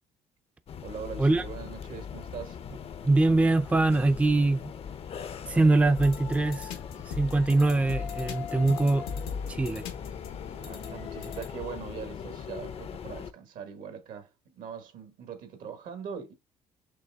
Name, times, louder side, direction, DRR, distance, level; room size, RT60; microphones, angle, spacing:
sound 1, 0.7-13.3, left 7 dB, 45° left, 0.5 m, -41 dB
voice 1, 0.8-2.6 10.5-16.3, right 7 dB, 75° right, 1.2 m, -41 dB
voice 2, 3.0-4.7 5.5-6.8 7.1-9.1 9.5-9.8, right 2 dB, 10° right, 0.4 m, -23 dB
sound 2, 5.9-11.8, left 6 dB, 90° left, 1.0 m, -39 dB
5.3 x 3.3 x 2.3 m
supercardioid pair, 80°, 14 cm